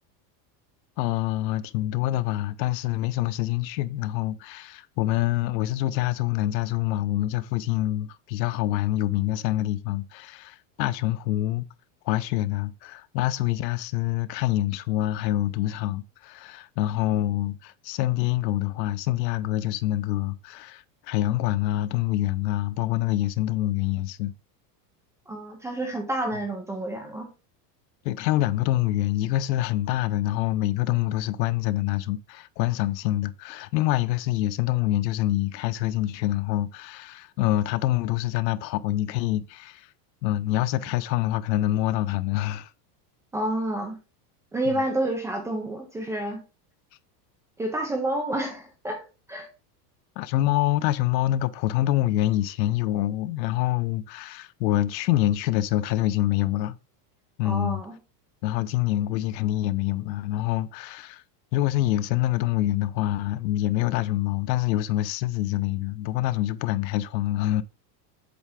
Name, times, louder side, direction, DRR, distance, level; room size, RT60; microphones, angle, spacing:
voice 1, 1.0-11.7 12.1-24.3 28.0-39.9 40.2-42.7 44.7-44.8 50.2-56.8 57.4-57.8 58.4-61.2 61.5-67.6, left 14 dB, 80° left, 0.7 m, -26 dB
voice 2, 25.3-27.3 43.3-44.0 44.5-46.4 47.6-49.0 49.3-49.5 57.4-58.0, right 1 dB, 5° right, 0.4 m, -29 dB
8.0 x 3.3 x 5.0 m
supercardioid pair, 170°, 50 cm